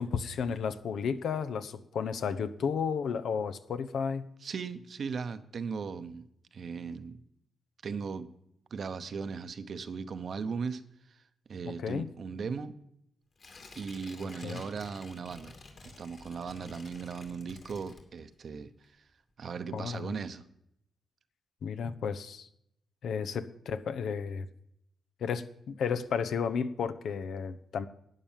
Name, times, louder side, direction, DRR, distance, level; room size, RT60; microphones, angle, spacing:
voice 1, 0.0-4.3 11.7-12.1 14.4-14.6 19.7-20.1 21.6-22.5 23.0-24.5 25.2-27.9, left 6 dB, 75° left, 11 dB, 0.8 m, -33 dB
voice 2, 4.4-6.2 6.5-7.2 7.8-8.3 8.7-10.8 11.1-11.2 11.5-12.8 13.8-15.5 15.8-18.7 19.4-20.4, right 5 dB, 60° right, 11 dB, 0.9 m, -37 dB
Tearing, 13.4-18.5 18.8-18.9, left 3 dB, 50° left, 2.8 m, -51 dB
11.5 x 9.2 x 7.4 m, 0.75 s
cardioid pair, 85°, 0 cm